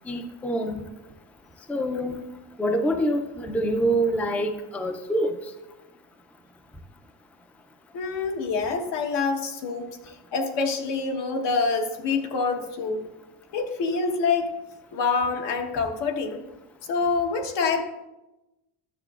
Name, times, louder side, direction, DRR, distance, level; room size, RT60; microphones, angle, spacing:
voice 1, 0.1-0.8 1.7-2.2 2.6-5.4, right 1 dB, 5° left, 7 dB, 0.4 m, -25 dB
voice 2, 7.9-13.0 13.5-14.5 14.9-16.4 16.9-17.8, left 4 dB, 75° left, 3 dB, 1.3 m, -26 dB
12.0 x 7.1 x 2.4 m, 1.0 s
cardioid pair, 120°, 42 cm